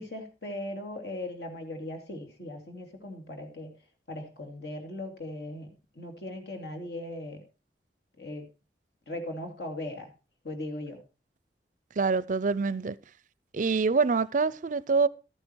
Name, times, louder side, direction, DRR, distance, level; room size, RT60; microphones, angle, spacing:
voice 1, 0.0-3.7 4.1-5.7 5.9-7.4 8.2-8.5 9.1-10.1 10.4-11.0, left 1 dB, 70° left, 2.6 m, -38 dB
voice 2, 12.0-13.0 13.5-15.1, right 4 dB, 45° right, 0.5 m, -25 dB
13.5 x 8.9 x 4.5 m
head